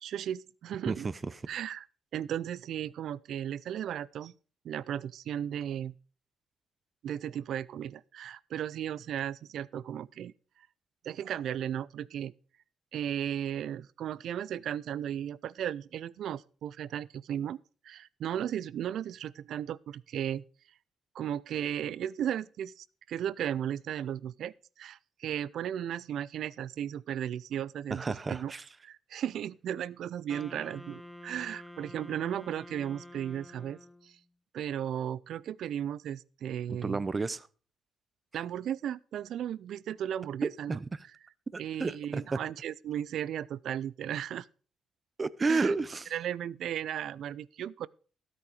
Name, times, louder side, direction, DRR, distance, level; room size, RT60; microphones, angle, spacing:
voice 1, 0.0-1.1 1.5-1.8 2.1-4.3 4.6-5.9 7.0-10.3 11.0-12.3 12.9-17.6 17.8-20.4 21.1-28.5 28.8-34.1 34.5-37.0 38.3-40.8 41.6-44.5 45.5-45.7 46.1-47.9, right 10 dB, 70° right, 0.5 m, -35 dB
voice 2, 0.9-1.4 27.9-28.7 36.7-37.5 40.4-41.0 41.5-42.4 45.2-46.1, right 3 dB, 30° right, 0.7 m, -32 dB
Wind instrument woodwind instrument, 30.3-34.1, left 1 dB, 5° left, 1.1 m, -48 dB
13.0 x 8.6 x 4.9 m
cardioid pair, 90°, 0 cm